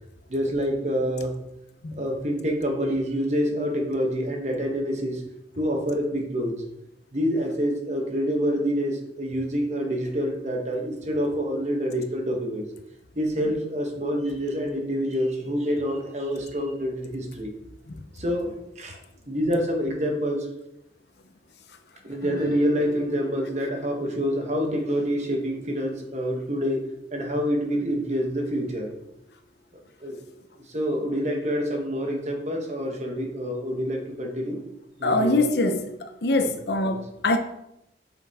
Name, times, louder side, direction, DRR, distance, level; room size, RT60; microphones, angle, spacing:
voice 1, 0.3-1.3 2.0-5.2 5.6-6.7 7.1-12.7 13.1-17.5 18.1-19.0 19.3-20.5 22.0-28.9 30.0-30.2 30.7-34.6 35.0-35.7 36.4-36.5 36.8-37.0, equal, 40° right, 1.2 m, -27 dB
Guitar, 22.1-28.2, left 1 dB, 25° left, 1.5 m, -43 dB
voice 2, 35.0-35.8 36.2-37.4, left 2 dB, 70° left, 0.7 m, -23 dB
7.2 x 5.5 x 3.6 m
head